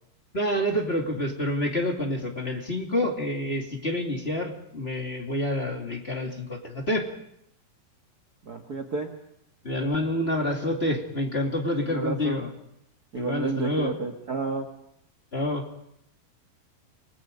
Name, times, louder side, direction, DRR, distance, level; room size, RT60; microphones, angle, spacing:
voice 1, 0.3-7.0 9.6-12.5 13.2-13.9 15.3-15.6, left 1 dB, 20° left, 1 dB, 2.2 m, -28 dB
voice 2, 8.4-9.1 11.9-12.4 13.1-14.7, right 4 dB, 60° right, 6 dB, 1.0 m, -31 dB
29.0 x 20.5 x 5.3 m, 0.76 s
omnidirectional pair, 4.2 m